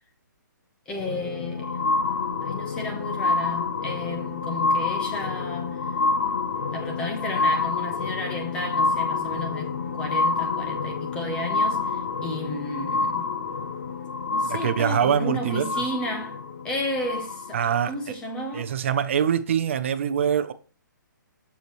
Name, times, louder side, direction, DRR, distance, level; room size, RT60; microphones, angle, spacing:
sound 1, 0.9-17.8 18.5-18.6, left 4 dB, 50° left, 0.8 m, -28 dB
voice 1, 0.9-1.8 2.4-5.9 6.7-13.4 14.3-16.4 16.6-17.6 17.9-18.7, left 1 dB, 10° left, 0.9 m, -33 dB
voice 2, 14.5-15.7 17.5-18.1 18.5-20.5, right 8 dB, 40° right, 0.6 m, -24 dB
7.0 x 6.8 x 3.1 m
hypercardioid pair, 175°, 11 cm